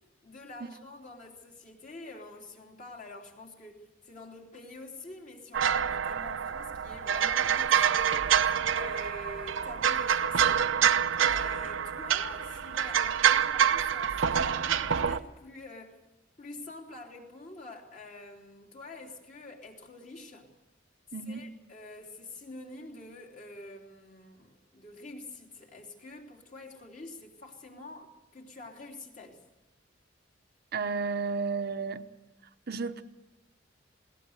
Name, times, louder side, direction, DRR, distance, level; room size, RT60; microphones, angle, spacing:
voice 1, 0.2-8.4 8.7-10.6 11.3-16.0 16.4-20.5 21.3-29.4, left 2 dB, 40° left, 3.3 m, -47 dB
sound 1, 5.5-15.2, right 8 dB, 85° right, 0.7 m, -26 dB
voice 2, 21.1-21.5 30.7-32.0 32.7-33.0, right 4 dB, 55° right, 0.9 m, -32 dB
20.5 x 18.0 x 8.0 m
head